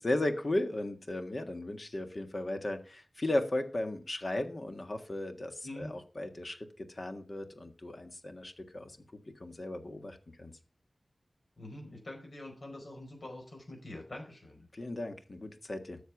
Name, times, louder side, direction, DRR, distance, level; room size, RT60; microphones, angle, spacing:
voice 1, 0.0-9.0 9.4-10.5 14.7-16.0, left 1 dB, 45° left, 6 dB, 1.6 m, -36 dB
voice 2, 11.6-14.7, left 1 dB, 65° left, 1 dB, 4.8 m, -45 dB
13.0 x 6.9 x 5.9 m, 0.36 s
wide cardioid pair, 80°, 0 cm